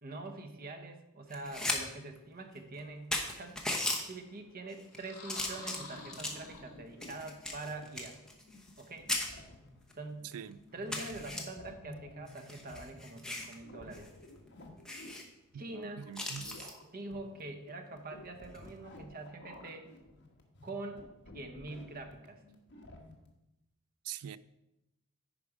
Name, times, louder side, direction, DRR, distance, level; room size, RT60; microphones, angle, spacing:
voice 1, 0.0-3.6 4.1-8.2 8.8-9.1 10.0-10.3 10.7-14.1 15.5-16.1 16.8-19.9 20.6-21.1 21.3-22.4, right 2 dB, 40° right, 6 dB, 0.9 m, -44 dB
sound 1, 1.3-1.8 2.2-2.3 2.8-2.9 3.1-4.0 4.7-5.0 5.3-6.5 7.0-8.8 9.1-9.3 9.9-10.0 10.3-10.4 10.9-11.4 12.3-13.5 13.9-14.1 14.4-14.5 14.8-15.2 16.1-16.7 18.4-18.7, left 1 dB, 5° left, 0.9 m, -37 dB
sound 2, 4.9-7.2, left 3 dB, 75° left, 2.1 m, -49 dB
sound 3, 6.5-23.3, left 1 dB, 50° left, 1.4 m, -54 dB
voice 2, 15.7-16.7 24.1-24.4, right 9 dB, 80° right, 16 dB, 0.4 m, -43 dB
10.0 x 5.0 x 4.8 m, 0.91 s
head